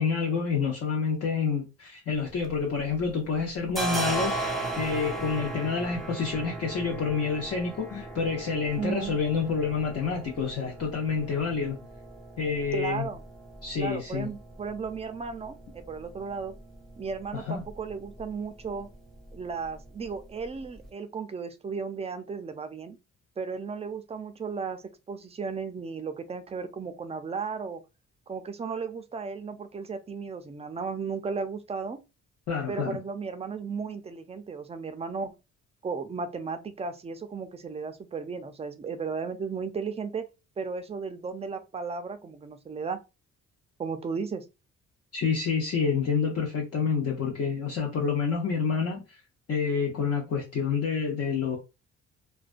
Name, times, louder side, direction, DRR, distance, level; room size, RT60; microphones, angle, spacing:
voice 1, 0.0-11.8 12.4-13.1 13.6-14.3 17.3-17.6 32.5-33.0 45.1-49.2 49.5-51.6, left 5 dB, 55° left, 0.7 m, -28 dB
sound 1, 2.2-3.1 3.4-20.9, right 2 dB, ahead, 0.9 m, -38 dB
voice 2, 8.8-9.2 12.7-13.2 13.8-16.5 17.0-18.9 19.3-23.0 23.4-27.8 28.3-32.0 32.7-35.3 35.8-40.2 40.6-43.0 43.8-44.4, right 5 dB, 20° right, 0.4 m, -35 dB
2.2 x 2.2 x 2.4 m
cardioid pair, 90°, 30 cm